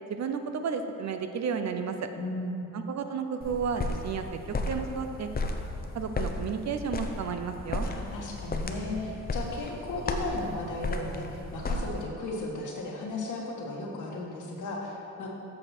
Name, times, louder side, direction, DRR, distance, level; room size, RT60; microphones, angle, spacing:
voice 1, 0.1-2.0 2.7-5.3 5.9-7.9, right 6 dB, 55° right, 7 dB, 0.6 m, -32 dB
voice 2, 2.1-2.7 7.8-15.3, left 2 dB, 65° left, -2 dB, 1.6 m, -35 dB
sound 1, 3.4-12.0, left 2 dB, 30° left, 0.7 m, -34 dB
7.6 x 6.5 x 4.4 m, 2.8 s
cardioid pair, 85°, 32 cm